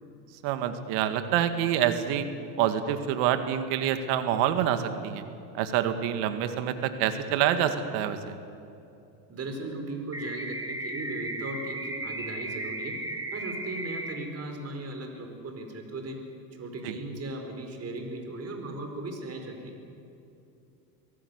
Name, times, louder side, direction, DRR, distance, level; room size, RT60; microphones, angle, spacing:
voice 1, 0.4-2.3 2.6-5.2 5.5-8.3 16.8-16.9, right 10 dB, 65° right, 9 dB, 2.2 m, -27 dB
voice 2, 9.3-12.9 13.3-16.2 16.6-19.7, right 2 dB, 35° right, 4 dB, 4.8 m, -37 dB
sound 1, 10.1-14.1, right 1 dB, 10° right, 3.0 m, -35 dB
24.5 x 17.0 x 8.2 m, 2.7 s
supercardioid pair, 95°, 44 cm